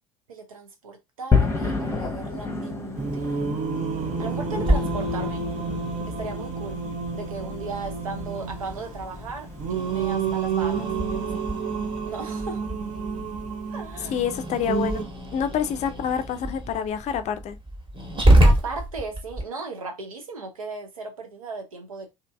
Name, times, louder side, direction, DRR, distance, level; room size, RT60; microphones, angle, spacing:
voice 1, 0.3-3.6 4.2-5.5 6.1-6.8 7.1-11.4 12.1-12.7 13.7-14.2 15.8-15.9 18.4-22.1, right 3 dB, 85° right, 0.6 m, -36 dB
sound 1, 1.3-11.6, left 4 dB, 15° left, 0.8 m, -31 dB
Singing, 3.0-15.0, right 5 dB, 45° right, 0.6 m, -30 dB
Growling, 4.6-19.4, right 1 dB, 30° right, 1.2 m, -27 dB
voice 2, 14.0-15.0 15.3-17.6, left 8 dB, 40° left, 0.4 m, -27 dB
2.7 x 2.5 x 2.2 m
hypercardioid pair, 65°, 17 cm